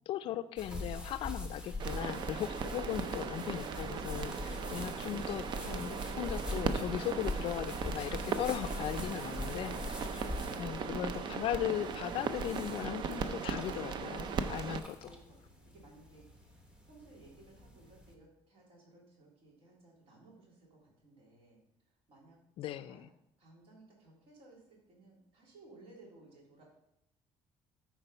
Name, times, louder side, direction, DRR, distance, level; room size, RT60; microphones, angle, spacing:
voice 1, 0.1-9.7 10.6-15.1 22.6-23.1, left 11 dB, 55° left, 14 dB, 0.4 m, -38 dB
sound 1, 0.6-18.1, left 1 dB, 10° right, 1.0 m, -44 dB
sound 2, 1.8-14.8, right 5 dB, 45° right, 0.6 m, -38 dB
voice 2, 14.7-22.4 22.7-23.0 23.4-26.6, right 2 dB, 60° right, -2 dB, 3.6 m, -59 dB
13.0 x 4.5 x 5.5 m, 0.81 s
cardioid pair, 175°, 11 cm